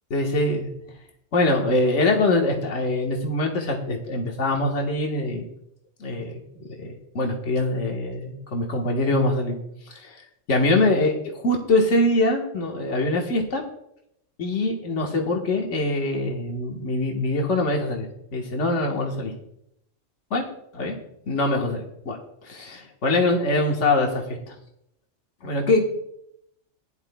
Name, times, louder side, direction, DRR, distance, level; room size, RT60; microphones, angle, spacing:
voice 1, 0.1-0.7 1.3-5.4 6.0-6.4 6.8-9.6 9.9-10.2 10.5-13.6 14.4-18.1 18.3-19.3 20.3-20.4 20.8-20.9 21.3-22.2 22.4-24.6 25.4-25.8, left 2 dB, 75° left, 1 dB, 1.7 m, -23 dB
16.0 x 10.5 x 2.3 m, 0.78 s
omnidirectional pair, 1.3 m